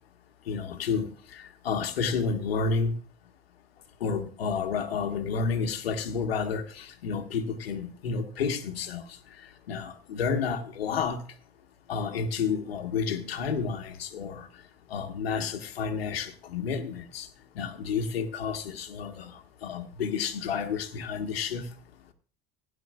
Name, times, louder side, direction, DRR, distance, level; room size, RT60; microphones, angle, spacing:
voice 1, 0.5-2.9 4.0-9.0 9.7-11.2 11.9-14.5 14.9-17.3 17.5-19.3 19.6-21.7, left 5 dB, 75° left, 1.6 m, -30 dB
16.5 x 10.5 x 2.5 m
hypercardioid pair, 80°, 30 cm